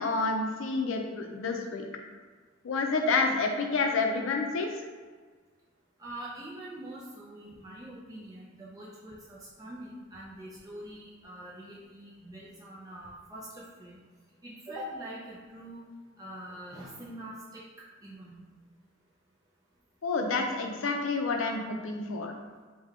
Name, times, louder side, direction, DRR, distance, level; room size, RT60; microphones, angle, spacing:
voice 1, 0.0-1.8 2.6-4.7 20.0-22.4, left 3 dB, 75° left, 3 dB, 0.5 m, -29 dB
voice 2, 6.0-14.0 14.4-15.8 16.2-17.6 18.0-18.4, right 1 dB, 20° right, -6 dB, 0.4 m, -44 dB
3.5 x 2.2 x 3.5 m, 1.5 s
head